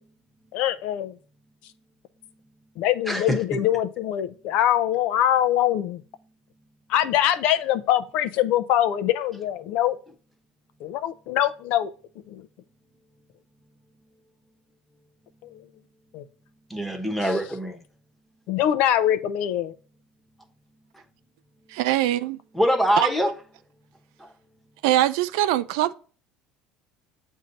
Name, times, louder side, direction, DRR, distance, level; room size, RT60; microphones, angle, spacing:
voice 1, 0.5-1.1 2.8-6.0 6.9-10.0 10.8-11.9 12.3-12.4 16.1-16.2 18.5-19.7, left 11 dB, 65° left, 0.5 m, -23 dB
voice 2, 3.1-3.4 16.7-17.8 22.5-23.3 24.2-24.3, equal, ahead, 1.0 m, -24 dB
voice 3, 21.7-22.4 23.0-23.1 24.8-25.9, right 14 dB, 85° right, 0.4 m, -22 dB
7.5 x 2.7 x 5.2 m
cardioid pair, 130°, 2 cm